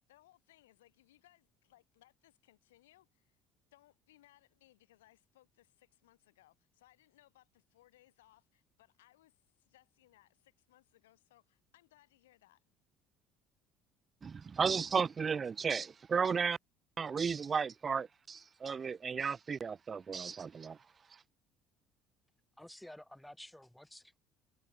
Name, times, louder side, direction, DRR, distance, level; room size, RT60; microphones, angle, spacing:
voice 1, 0.1-3.4 3.7-12.8, left 16 dB, 75° left, 6.1 m, -67 dB
voice 2, 14.2-16.6 17.0-20.8 21.1-21.2, right 6 dB, 35° right, 0.4 m, -34 dB
voice 3, 22.6-24.2, left 1 dB, 5° left, 4.6 m, -52 dB
figure-of-eight pair, 60°, 0 cm